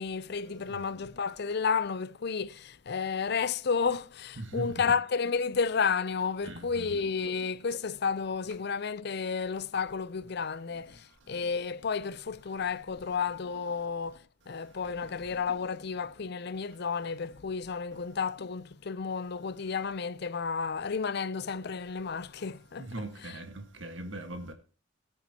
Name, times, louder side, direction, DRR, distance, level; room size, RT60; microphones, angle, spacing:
voice 1, 0.0-23.4, left 5 dB, 55° left, 0.6 m, -32 dB
voice 2, 4.4-4.7 6.4-6.8 22.8-24.5, right 1 dB, 75° right, 1.7 m, -39 dB
18.0 x 9.9 x 2.9 m
head